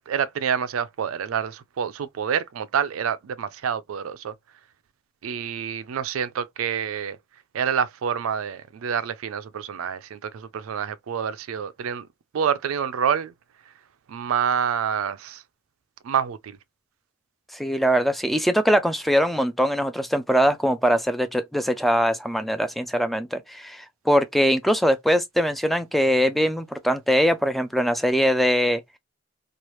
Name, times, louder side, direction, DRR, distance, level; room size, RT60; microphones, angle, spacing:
voice 1, 0.0-4.3 5.2-7.2 7.5-12.1 12.3-13.3 13.7-13.8 14.1-15.4 16.0-16.6, right 7 dB, 80° right, 0.4 m, -27 dB
voice 2, 17.5-28.8, equal, ahead, 0.3 m, -22 dB
3.1 x 2.3 x 3.0 m
head